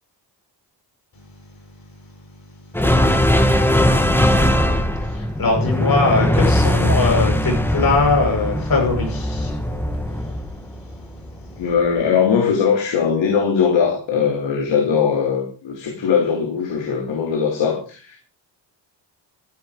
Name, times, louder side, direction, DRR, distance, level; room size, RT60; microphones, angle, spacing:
sound 1, 2.7-11.3, equal, 5° left, 1.6 m, -19 dB
voice 1, 5.0-9.6, left 3 dB, 50° left, 1 dB, 8.0 m, -21 dB
voice 2, 11.6-18.2, left 6 dB, 80° left, 2 dB, 3.2 m, -20 dB
14.5 x 10.0 x 5.0 m, 0.38 s
cardioid pair, 105°, 44 cm